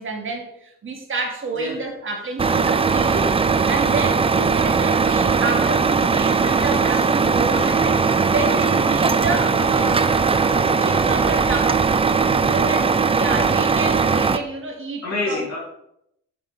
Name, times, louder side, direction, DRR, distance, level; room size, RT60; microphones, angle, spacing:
voice 1, 0.0-8.0 8.3-10.0 10.4-11.8 12.5-12.9 13.1-15.5, right 3 dB, 40° right, 1 dB, 2.3 m, -29 dB
Truck, 2.4-14.4, right 5 dB, 20° right, 0.5 m, -19 dB
voice 2, 3.7-4.0 6.8-7.0 7.5-8.3 12.2-12.6 15.0-15.6, left 3 dB, 65° left, -7 dB, 3.0 m, -30 dB
7.2 x 5.8 x 5.0 m, 0.77 s
cardioid pair, 90°, 30 cm